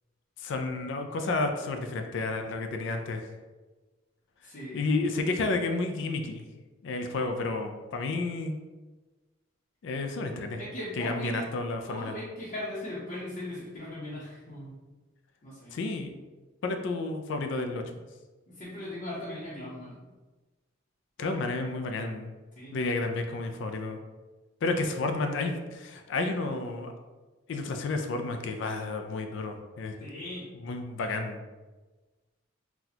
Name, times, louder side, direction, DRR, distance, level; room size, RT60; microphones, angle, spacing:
voice 1, 0.4-3.2 4.7-6.4 6.8-8.6 9.8-10.6 11.0-12.1 15.7-16.1 16.6-17.8 21.2-22.3 22.7-24.0 24.6-26.9 27.5-29.9 30.6-31.4, left 3 dB, 60° left, 5 dB, 0.3 m, -31 dB
voice 2, 4.4-4.8 10.6-11.5 11.9-14.8 15.4-15.8 18.5-20.0 22.6-22.7 30.0-30.5, left 1 dB, 40° left, -10 dB, 0.8 m, -38 dB
4.0 x 2.2 x 2.8 m, 1.2 s
head